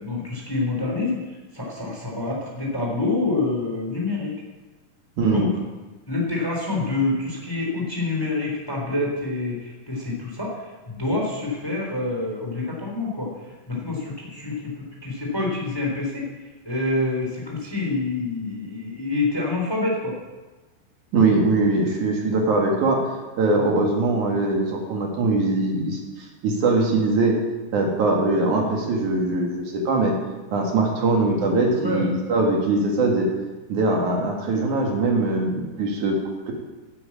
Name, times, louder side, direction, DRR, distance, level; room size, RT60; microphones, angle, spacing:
voice 1, 0.0-4.3 5.2-5.5 6.1-13.3 13.7-16.3 16.6-20.2 23.5-23.6 31.0-31.1 31.8-32.1 35.9-36.1, left 2 dB, 5° left, -2 dB, 2.9 m, -27 dB
voice 2, 5.2-5.5 21.1-27.4 27.7-30.2 30.5-33.3 33.7-36.2 36.5-36.6, right 2 dB, 65° right, 0 dB, 3.2 m, -22 dB
11.5 x 9.1 x 8.6 m, 1.2 s
omnidirectional pair, 3.9 m